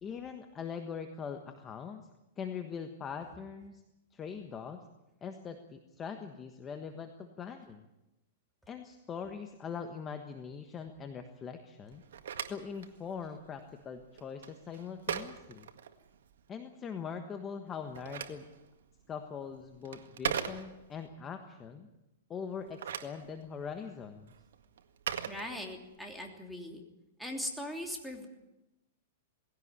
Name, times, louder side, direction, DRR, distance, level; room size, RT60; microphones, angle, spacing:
voice 1, 0.0-2.0 2.4-3.8 4.1-4.8 5.2-7.8 8.7-12.0 12.5-15.7 16.5-18.4 19.1-21.9 22.3-24.3, left 6 dB, 20° left, 6 dB, 1.3 m, -42 dB
Telephone, 11.9-16.4 17.7-21.1 22.5-26.1, right 8 dB, 85° right, 1.8 m, -41 dB
voice 2, 25.3-26.8 27.2-28.3, left 1 dB, ahead, 1 dB, 3.1 m, -40 dB
19.5 x 16.5 x 9.7 m, 0.96 s
supercardioid pair, 155°, 0 cm